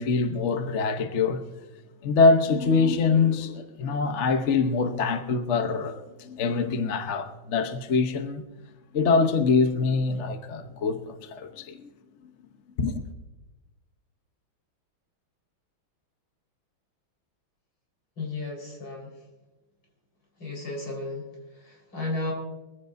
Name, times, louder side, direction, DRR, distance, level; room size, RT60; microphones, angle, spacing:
voice 1, 0.0-1.4 2.0-8.4 8.9-11.9 12.8-13.0, left 4 dB, 45° left, 1.0 m, -24 dB
voice 2, 18.2-19.2 20.4-22.3, left 2 dB, 75° left, 5.4 m, -34 dB
23.5 x 15.5 x 2.6 m
omnidirectional pair, 2.2 m